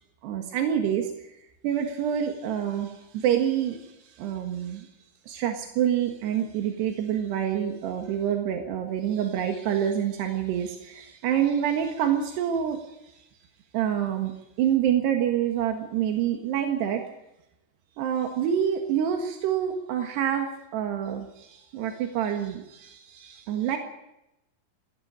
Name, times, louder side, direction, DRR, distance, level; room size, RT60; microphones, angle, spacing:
voice 1, 0.2-1.1 1.6-2.9 3.2-3.8 4.2-4.8 5.3-12.8 13.7-14.3 14.6-17.0 18.0-20.5 20.7-21.3 21.7-23.8, right 9 dB, 90° right, 4 dB, 3.7 m, -26 dB
20.0 x 16.5 x 8.6 m, 0.87 s
omnidirectional pair, 4.7 m